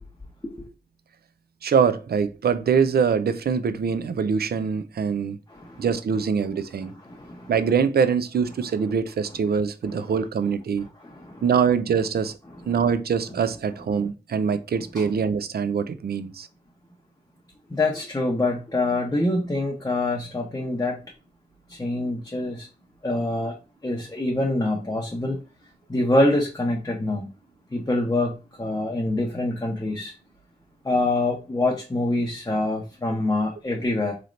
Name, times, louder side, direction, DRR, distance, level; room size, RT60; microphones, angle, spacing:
voice 1, 1.6-5.4 5.8-6.9 7.5-10.9 11.4-12.3 12.7-16.5, right 6 dB, 70° right, 0.4 m, -23 dB
voice 2, 5.5-5.8 6.8-7.5 11.0-11.4 14.9-15.0 17.7-21.0 21.7-22.7 23.0-23.5 23.8-25.4 25.9-27.3 27.7-30.1 30.8-34.2, left 2 dB, 20° left, 0.8 m, -25 dB
4.2 x 3.1 x 2.5 m
wide cardioid pair, 100°, 17 cm